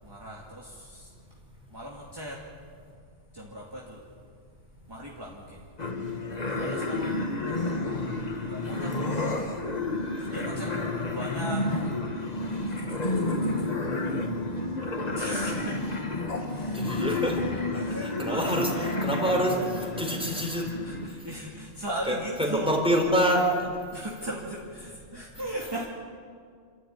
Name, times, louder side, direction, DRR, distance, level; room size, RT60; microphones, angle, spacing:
voice 1, 0.0-1.1 1.7-2.4 3.3-4.0 4.9-5.6 6.5-7.3 8.5-9.4 10.2-10.7 11.1-11.9 13.0-13.7 15.2-15.8 16.3-17.2 17.7-18.5 20.8-22.8 23.9-25.9, right 1 dB, 20° right, -3 dB, 2.5 m, -38 dB
sound 1, 5.8-21.1, left 2 dB, 35° left, 1.8 m, -30 dB
voice 2, 16.7-17.4 18.0-20.7 22.1-23.7, equal, 5° right, 0 dB, 4.2 m, -26 dB
28.5 x 13.0 x 9.6 m, 2.2 s
omnidirectional pair, 1.2 m